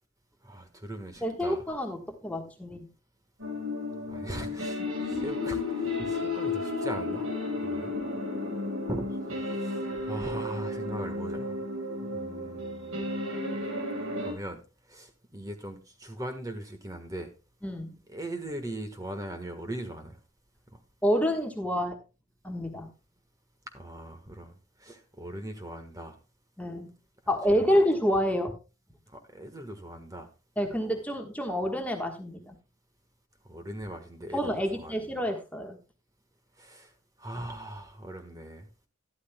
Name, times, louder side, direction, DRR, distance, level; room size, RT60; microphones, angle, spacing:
voice 1, 0.4-1.6 4.1-7.3 7.6-8.0 8.9-11.6 12.0-13.0 14.2-14.6 14.9-17.3 18.1-20.2 20.7-20.8 23.7-26.2 27.5-27.8 29.1-30.3 33.4-35.1 36.6-36.9 37.2-38.7, right 1 dB, 15° right, 6 dB, 1.4 m, -40 dB
voice 2, 1.2-2.8 6.0-6.2 17.6-17.9 21.0-22.0 22.4-22.9 26.6-26.9 27.3-28.5 30.6-32.5 34.3-35.8, equal, 5° left, 3 dB, 1.4 m, -28 dB
sound 1, 3.4-14.3, left 2 dB, 75° right, 4.4 m, -33 dB
12.5 x 12.0 x 2.3 m, 0.31 s
head